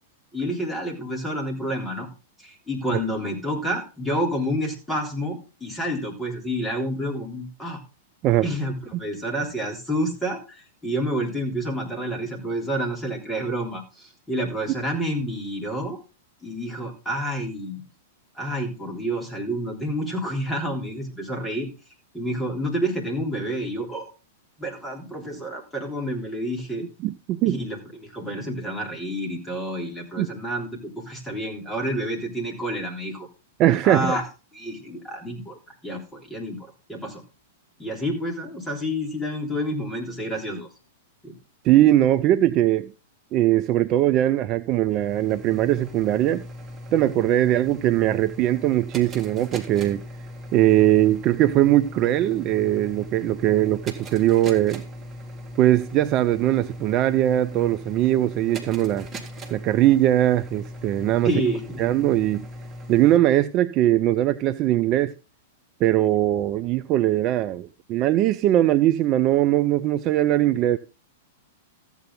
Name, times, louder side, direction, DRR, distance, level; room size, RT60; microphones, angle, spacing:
voice 1, 0.3-2.1 2.4-7.8 8.4-16.0 16.4-17.8 18.4-21.7 22.1-24.1 24.6-26.9 27.5-33.3 33.8-34.2 34.5-37.2 37.8-40.7 41.2-41.4 61.2-61.8, equal, 10° left, 3.5 m, -29 dB
voice 2, 27.0-27.6 30.2-30.3 33.6-34.2 41.6-42.9 43.3-46.4 46.9-50.0 50.5-54.8 55.6-59.1 59.5-61.3 61.8-62.5 62.9-65.1 65.8-70.8, right 13 dB, 35° right, 0.5 m, -20 dB
sound 1, 44.7-63.2, equal, 20° right, 2.1 m, -39 dB
14.0 x 8.3 x 3.9 m
figure-of-eight pair, 100°, 0 cm